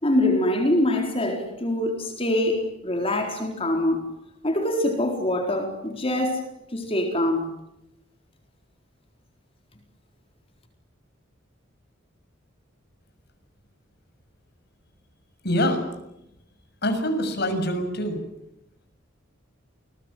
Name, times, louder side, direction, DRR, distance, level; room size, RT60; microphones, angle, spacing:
voice 1, 0.0-4.1 4.4-6.5 6.7-7.5, left 1 dB, 30° left, 4.2 m, -24 dB
voice 2, 15.4-15.8 16.8-18.2, equal, 55° left, 7.3 m, -24 dB
29.0 x 21.5 x 9.3 m
head